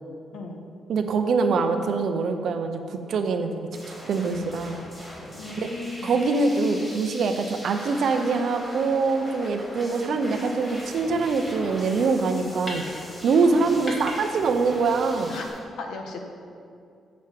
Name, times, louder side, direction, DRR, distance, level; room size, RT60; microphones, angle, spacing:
voice 1, 0.9-4.8 5.6-5.7 6.0-12.8 13.2-15.3, right 4 dB, 55° right, 6 dB, 0.7 m, -24 dB
sound 1, 3.7-15.5, equal, 10° left, 2.5 m, -41 dB
voice 2, 5.3-6.1 13.5-13.6 15.3-16.2, left 3 dB, 85° left, 3 dB, 1.2 m, -36 dB
sound 2, 10.6-15.6, left 1 dB, 30° left, 1.8 m, -41 dB
7.7 x 6.1 x 7.4 m, 2.4 s
cardioid pair, 165°, 0 cm